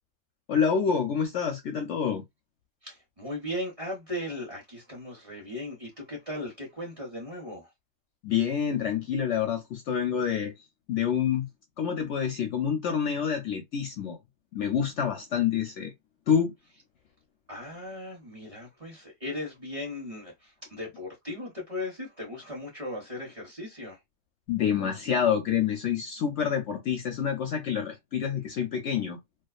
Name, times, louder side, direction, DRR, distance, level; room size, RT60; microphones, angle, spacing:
voice 1, 0.5-2.2 8.2-10.5 10.9-11.5 11.8-14.2 14.5-15.9 16.3-16.5 24.5-29.2, left 7 dB, 65° left, 0.8 m, -27 dB
voice 2, 2.8-7.7 17.5-24.0, left 1 dB, 30° right, 0.7 m, -37 dB
2.4 x 2.4 x 2.3 m
omnidirectional pair, 1.5 m